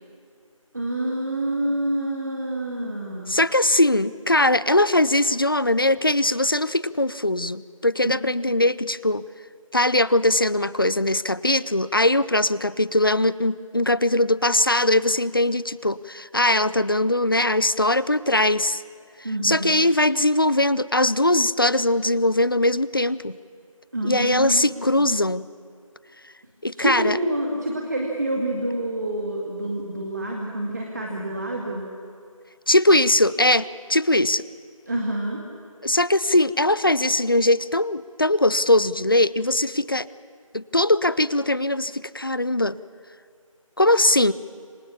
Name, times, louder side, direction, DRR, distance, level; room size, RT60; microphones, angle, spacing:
voice 1, 0.7-3.3 8.5-8.6 19.2-19.7 23.9-24.7 25.0-25.1 26.8-31.9 34.9-35.4, right 1 dB, 30° right, -1 dB, 2.3 m, -27 dB
voice 2, 3.3-9.2 9.7-18.8 19.4-23.3 24.0-25.4 26.6-27.2 32.7-34.4 35.8-40.1 40.5-42.8 43.8-44.3, left 1 dB, 40° left, 19 dB, 0.5 m, -21 dB
27.0 x 24.0 x 7.2 m, 2.3 s
figure-of-eight pair, 175°, 18 cm